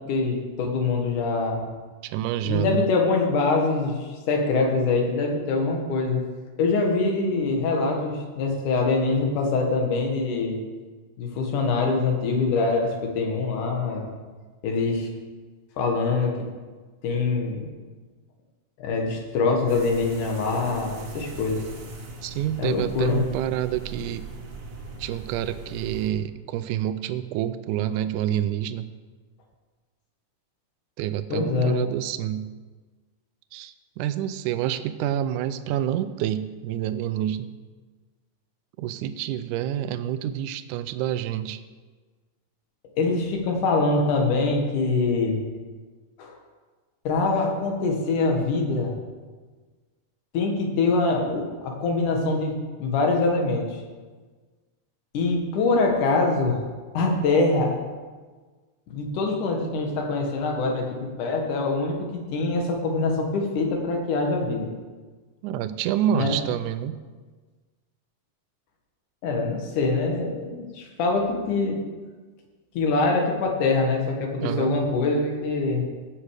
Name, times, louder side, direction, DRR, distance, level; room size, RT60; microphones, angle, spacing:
voice 1, 0.0-1.7 2.4-6.2 6.6-10.6 11.2-14.1 14.6-15.1 15.8-16.4 17.0-17.7 18.8-21.6 22.6-23.2 31.3-31.8 43.0-45.4 46.2-46.3 47.0-48.9 50.3-52.5 52.8-53.8 55.1-56.6 56.9-57.8 58.9-64.7 66.1-66.4 69.2-71.8 72.7-75.9, left 3 dB, 70° left, 1 dB, 2.9 m, -24 dB
voice 2, 2.0-2.9 22.2-24.3 25.0-28.9 31.0-32.6 33.5-37.5 38.8-41.6 65.4-67.0 74.4-74.8, right 11 dB, 80° right, 12 dB, 1.9 m, -28 dB
sound 1, 19.7-26.1, right 3 dB, 55° right, 1.8 m, -39 dB
17.0 x 6.3 x 4.8 m, 1.4 s
omnidirectional pair, 3.8 m